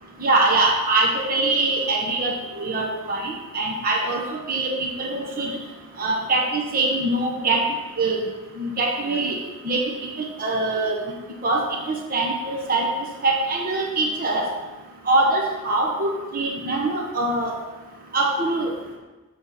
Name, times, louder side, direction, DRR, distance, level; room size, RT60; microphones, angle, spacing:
voice 1, 0.2-5.5 6.0-7.6 8.0-8.2 8.6-9.4 9.6-10.9 11.4-12.9 13.2-14.5 15.1-17.5 18.1-18.7, right 2 dB, 40° right, 0 dB, 1.0 m, -23 dB
6.9 x 4.7 x 6.8 m, 1.2 s
head